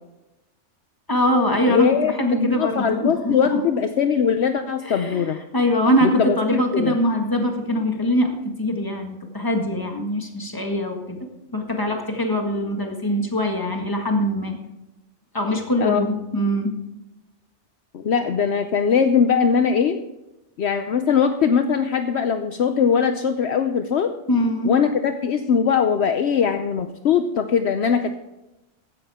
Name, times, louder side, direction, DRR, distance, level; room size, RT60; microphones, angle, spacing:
voice 1, 1.1-3.6 4.8-5.2 5.5-11.2 11.5-14.6 15.3-16.8 24.3-24.7, equal, 15° left, 2 dB, 1.8 m, -23 dB
voice 2, 1.7-5.4 6.0-7.0 15.8-16.1 17.9-20.0 20.6-24.1 24.6-28.1, left 7 dB, 65° left, 7 dB, 1.0 m, -21 dB
15.0 x 11.5 x 3.6 m, 0.97 s
omnidirectional pair, 1.2 m